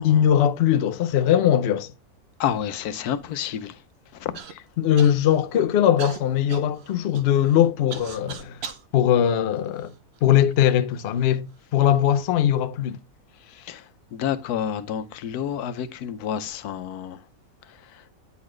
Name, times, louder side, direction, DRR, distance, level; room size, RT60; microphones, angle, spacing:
voice 1, 0.0-1.9 4.8-8.6 8.9-9.9 10.2-11.5 11.7-13.0, left 10 dB, 65° left, 0.6 m, -20 dB
voice 2, 2.4-3.8 4.1-4.4 13.5-17.2 17.6-18.0, left 9 dB, 85° left, 1.2 m, -30 dB
Human voice / Cough, 4.3-4.5 5.0-5.5 6.0-8.9 9.6-10.4 11.1-11.2 11.9-12.3, right 6 dB, 55° right, 0.8 m, -39 dB
9.5 x 4.1 x 3.1 m
omnidirectional pair, 1.6 m